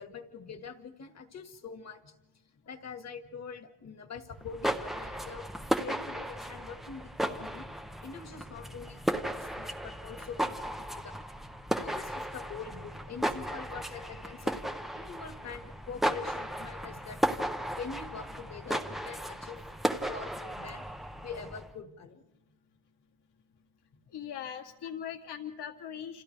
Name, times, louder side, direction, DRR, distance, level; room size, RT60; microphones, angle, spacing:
voice 1, 0.0-2.2 2.7-5.5 5.7-7.7 8.0-11.2 11.8-14.6 15.0-17.2 17.7-19.6 20.1-20.8 21.2-22.2, left 5 dB, 35° left, 6 dB, 1.8 m, -44 dB
sound 1, 4.4-21.7, equal, ahead, 0.6 m, -35 dB
voice 2, 24.1-26.2, left 9 dB, 55° left, 4 dB, 2.2 m, -40 dB
29.5 x 27.5 x 3.4 m, 0.96 s
cardioid pair, 170°, 47 cm